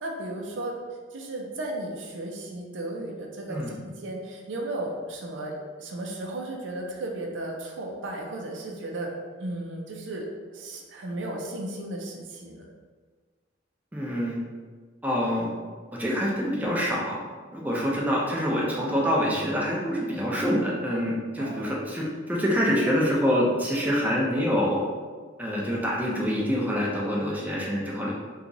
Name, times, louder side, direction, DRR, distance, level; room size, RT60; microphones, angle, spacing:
voice 1, 0.0-0.8 1.1-12.7 21.4-21.8, right 1 dB, 75° right, 1 dB, 0.5 m, -35 dB
voice 2, 13.9-14.4 15.0-15.5 16.0-17.2 17.5-24.8 25.4-28.1, equal, 10° right, -4 dB, 0.5 m, -26 dB
2.9 x 2.4 x 3.8 m, 1.5 s
head